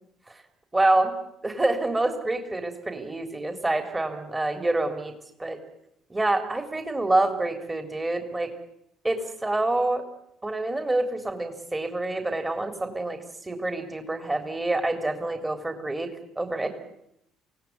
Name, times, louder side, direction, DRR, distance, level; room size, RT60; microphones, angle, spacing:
voice 1, 0.7-1.1 1.4-5.1 5.4-5.6 6.1-8.5 9.0-10.0 10.4-16.1 16.4-16.7, right 2 dB, 15° right, 6 dB, 3.7 m, -27 dB
27.0 x 17.5 x 9.7 m, 0.79 s
hypercardioid pair, 55°, 0 cm